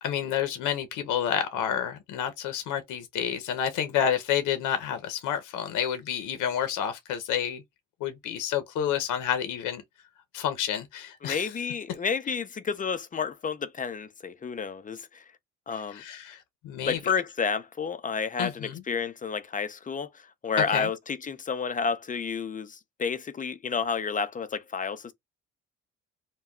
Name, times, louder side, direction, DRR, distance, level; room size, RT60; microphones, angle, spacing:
voice 1, 0.0-7.6 8.0-9.8 10.3-11.5 15.9-16.4 16.6-17.0 18.4-18.8 20.7-20.9, left 9 dB, 85° left, 0.7 m, -29 dB
voice 2, 11.2-15.2 15.7-16.0 16.8-20.1 20.4-25.1, left 6 dB, 25° left, 0.5 m, -30 dB
2.2 x 2.2 x 3.6 m
cardioid pair, 90°, 30 cm